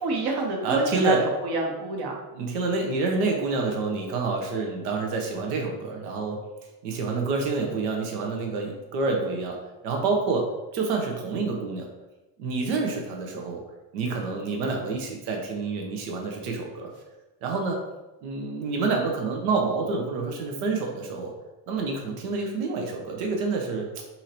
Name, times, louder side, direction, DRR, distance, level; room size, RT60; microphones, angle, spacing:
voice 1, 0.0-2.2, right 2 dB, 60° right, 0 dB, 1.1 m, -27 dB
voice 2, 0.6-1.2 2.4-6.4 6.8-9.6 9.8-10.4 10.7-11.9 12.4-13.6 13.9-16.9 17.4-17.8 18.2-21.3 21.7-24.0, right 3 dB, 90° right, 1 dB, 0.7 m, -28 dB
2.8 x 2.7 x 4.1 m, 1.0 s
supercardioid pair, 65°, 44 cm